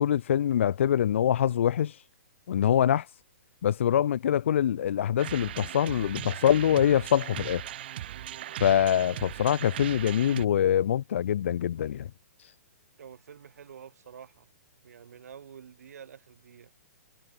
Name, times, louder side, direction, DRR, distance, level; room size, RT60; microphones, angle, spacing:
voice 1, 0.0-1.9 2.5-3.0 3.6-7.6 8.6-12.1, left 10 dB, 50° left, 0.6 m, -24 dB
sound 1, 5.2-10.4, right 12 dB, 40° right, 1.8 m, -38 dB
voice 2, 13.0-14.5 14.8-16.7, right 8 dB, 70° right, 2.4 m, -48 dB
hypercardioid pair, 175°, 9 cm